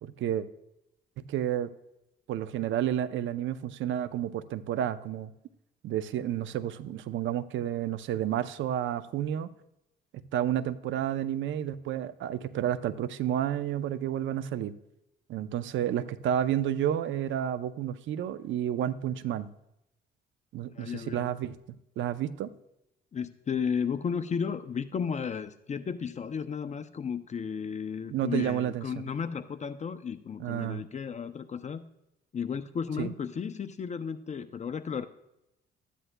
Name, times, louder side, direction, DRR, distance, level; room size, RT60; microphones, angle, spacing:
voice 1, 0.0-0.5 1.2-1.7 2.3-5.3 5.8-9.5 10.1-14.7 15.3-19.5 20.5-21.6 22.0-22.5 28.1-29.0 30.4-30.8 33.0-33.1, right 10 dB, 75° right, 13 dB, 0.6 m, -31 dB
voice 2, 20.7-21.3 23.1-31.8 32.3-35.1, left 6 dB, 35° left, 11 dB, 0.5 m, -34 dB
13.5 x 10.0 x 2.2 m, 0.87 s
cardioid pair, 90°, 20 cm